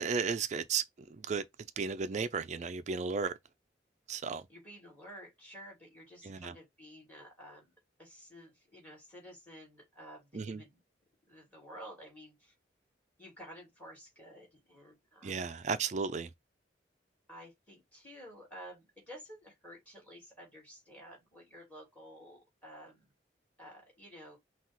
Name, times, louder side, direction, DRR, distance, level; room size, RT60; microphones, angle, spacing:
voice 1, 0.0-1.4 1.8-3.4 4.1-4.4 6.2-6.5 10.3-10.6 15.2-16.3, right 5 dB, 40° right, 0.4 m, -34 dB
voice 2, 4.5-7.7 8.0-10.8 11.3-12.5 13.2-15.4 17.3-23.1 23.6-24.4, equal, 10° left, 2.7 m, -52 dB
5.8 x 2.3 x 3.0 m
head